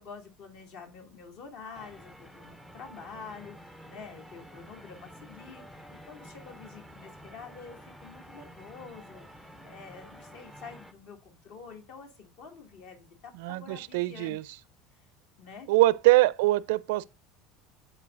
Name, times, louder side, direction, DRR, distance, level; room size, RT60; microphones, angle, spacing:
voice 1, 0.0-14.4 15.4-15.7, left 5 dB, 55° left, 2.2 m, -47 dB
sound 1, 1.7-10.9, equal, ahead, 0.5 m, -50 dB
voice 2, 13.4-14.4 15.7-17.0, right 18 dB, 85° right, 0.4 m, -23 dB
11.0 x 4.4 x 2.5 m
cardioid pair, 165°, 0 cm